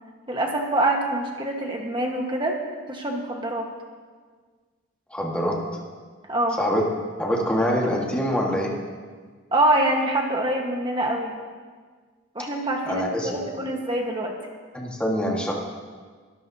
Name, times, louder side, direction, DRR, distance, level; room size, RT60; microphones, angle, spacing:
voice 1, 0.3-2.6 2.9-3.7 6.3-6.6 9.5-11.3 12.3-14.3, right 1 dB, 20° right, 1 dB, 1.4 m, -25 dB
voice 2, 5.1-5.6 6.6-6.8 7.2-8.7 12.8-13.4 14.7-15.5, equal, 5° left, -2 dB, 1.6 m, -24 dB
22.0 x 13.5 x 2.8 m, 1.5 s
head